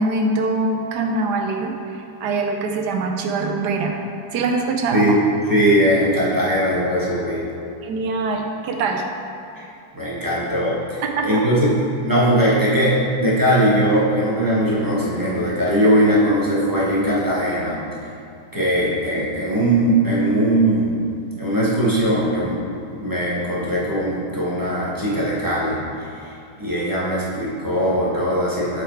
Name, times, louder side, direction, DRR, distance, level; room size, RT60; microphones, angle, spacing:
voice 1, 0.0-4.0 4.3-5.2 7.8-9.0 11.0-11.5, right 3 dB, 85° right, 3 dB, 1.3 m, -23 dB
voice 2, 5.5-7.4 9.6-9.7 9.9-11.8 12.0-17.8 18.5-21.0 21.4-22.6 23.0-28.8, right 1 dB, 15° right, -8 dB, 1.3 m, -20 dB
7.1 x 4.8 x 4.5 m, 2.6 s
omnidirectional pair, 1.7 m